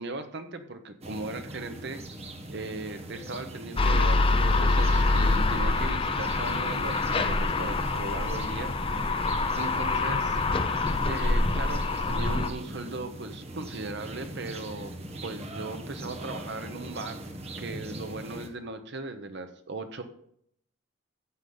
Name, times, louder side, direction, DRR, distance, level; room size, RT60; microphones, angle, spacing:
voice 1, 0.0-2.0 2.5-8.7 9.5-10.4 11.1-14.9 15.2-17.2 17.6-20.0, right 2 dB, 60° right, 8 dB, 1.0 m, -38 dB
sound 1, 1.0-18.5, right 1 dB, 30° right, 1.2 m, -41 dB
sound 2, 3.8-12.5, left 3 dB, 25° left, 0.6 m, -25 dB
14.0 x 8.0 x 4.0 m, 0.71 s
head